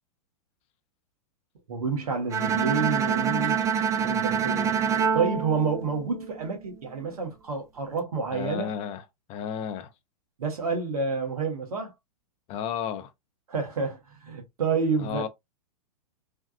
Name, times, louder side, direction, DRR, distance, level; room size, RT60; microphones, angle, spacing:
voice 1, 1.7-3.6 4.0-4.7 5.1-8.7 10.4-11.9 13.5-15.2, right 4 dB, 75° right, 1.3 m, -29 dB
Bowed string instrument, 2.3-6.5, right 7 dB, 15° right, 0.4 m, -26 dB
voice 2, 8.3-9.9 12.5-13.1 15.0-15.3, left 8 dB, 35° left, 0.6 m, -33 dB
3.4 x 2.3 x 2.4 m
hypercardioid pair, 105°, 19 cm